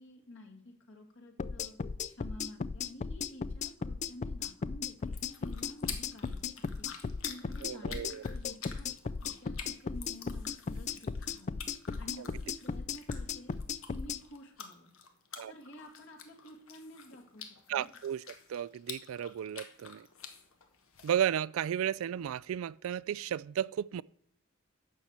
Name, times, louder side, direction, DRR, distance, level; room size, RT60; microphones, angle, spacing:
voice 1, 0.0-1.8 2.1-6.9 7.3-8.9 9.2-11.6 12.0-13.5 13.9-14.9 15.5-17.9, left 1 dB, 65° left, 2.3 m, -51 dB
sound 1, 1.4-14.2, left 5 dB, 35° left, 0.3 m, -36 dB
sound 2, 5.0-21.1, left 7 dB, 80° left, 1.4 m, -49 dB
voice 2, 7.6-8.3 12.2-12.3 15.4-15.5 17.7-18.2 18.5-20.1 21.0-24.0, right 9 dB, 75° right, 0.3 m, -34 dB
12.0 x 4.3 x 8.2 m
head